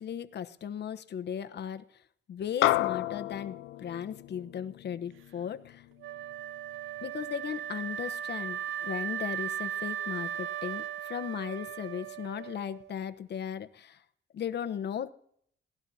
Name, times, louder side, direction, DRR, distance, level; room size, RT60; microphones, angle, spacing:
voice 1, 0.0-1.8 2.3-5.8 7.0-14.0 14.3-15.1, left 8 dB, 60° left, 10 dB, 1.0 m, -37 dB
sound 1, 2.6-7.2, left 15 dB, 85° left, 0.6 m, -32 dB
Wind instrument woodwind instrument, 6.0-13.0, right 10 dB, 80° right, 0.6 m, -37 dB
22.5 x 18.0 x 2.8 m, 0.67 s
cardioid pair, 90°, 20 cm